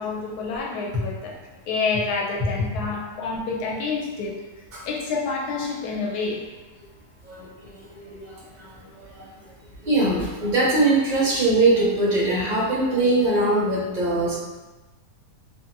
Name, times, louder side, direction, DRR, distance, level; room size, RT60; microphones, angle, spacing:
voice 1, 0.0-1.4 1.7-4.4 4.8-6.4, left 4 dB, 80° left, -2 dB, 1.1 m, -28 dB
voice 2, 7.9-8.3 8.6-8.7 9.8-14.3, right 2 dB, 45° right, -5 dB, 0.7 m, -21 dB
2.7 x 2.5 x 2.5 m, 1.1 s
omnidirectional pair, 1.6 m